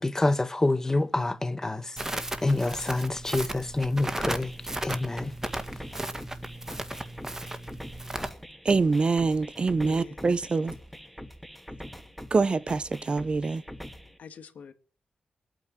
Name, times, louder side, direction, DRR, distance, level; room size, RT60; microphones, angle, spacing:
voice 1, 0.0-2.0 2.4-4.5 4.8-5.3, left 2 dB, 20° left, 1.3 m, -27 dB
Crackle, 2.0-8.3, right 1 dB, 20° right, 1.9 m, -35 dB
sound 1, 4.2-14.2, equal, 5° left, 1.9 m, -44 dB
voice 2, 8.6-10.7 12.3-13.6, right 4 dB, 40° right, 0.9 m, -25 dB
voice 3, 9.8-10.3 14.2-14.7, left 6 dB, 75° left, 2.0 m, -45 dB
23.0 x 9.2 x 6.0 m
cardioid pair, 75°, 3 cm